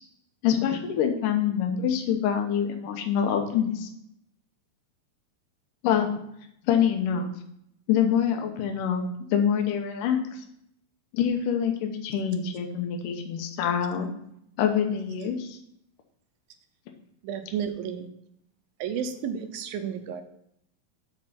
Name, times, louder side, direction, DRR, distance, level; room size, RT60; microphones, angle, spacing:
voice 1, 0.4-3.9 5.8-6.1 6.6-7.3 7.9-9.0 9.3-10.4 11.1-14.1 14.6-15.6, left 8 dB, 70° left, 4 dB, 2.3 m, -25 dB
voice 2, 17.2-18.1 18.8-20.2, right 8 dB, 75° right, 7 dB, 2.5 m, -32 dB
7.7 x 4.6 x 5.7 m, 0.74 s
omnidirectional pair, 4.4 m